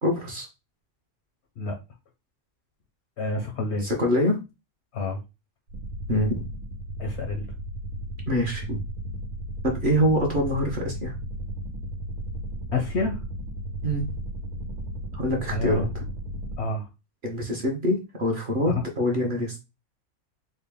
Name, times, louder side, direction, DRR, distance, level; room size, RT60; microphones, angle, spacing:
voice 1, 0.0-0.5 3.8-4.4 6.1-6.4 8.3-8.8 9.6-11.1 13.8-14.1 15.1-16.0 17.2-19.6, equal, 45° right, 0 dB, 0.8 m, -25 dB
voice 2, 3.2-3.9 4.9-5.2 7.0-7.5 12.7-13.2 15.5-15.9 16.6-16.9 18.7-18.8, left 3 dB, 60° left, 4 dB, 0.7 m, -28 dB
sound 1, 5.7-16.6, right 1 dB, 90° right, 1.4 m, -34 dB
4.0 x 2.1 x 3.4 m, 0.26 s
omnidirectional pair, 1.5 m